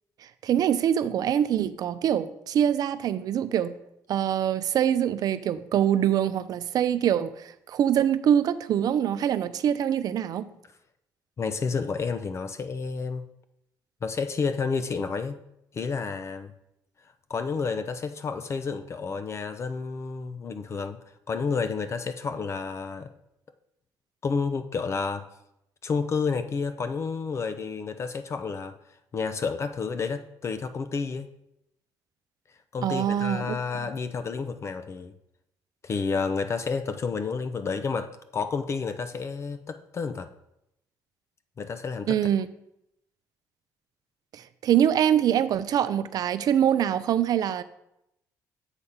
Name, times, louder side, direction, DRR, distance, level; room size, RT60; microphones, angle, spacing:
voice 1, 0.4-3.7 4.1-10.5 32.8-33.9 42.1-42.5 44.3-47.6, right 10 dB, 60° right, 13 dB, 0.5 m, -24 dB
voice 2, 11.4-13.2 14.0-15.4 15.7-16.5 17.3-21.0 21.3-23.1 24.2-25.3 25.8-28.7 29.1-31.3 32.7-35.1 35.8-40.3 41.6-42.2, left 5 dB, 40° left, 9 dB, 0.5 m, -30 dB
8.0 x 3.6 x 5.6 m, 0.81 s
cardioid pair, 100°, 7 cm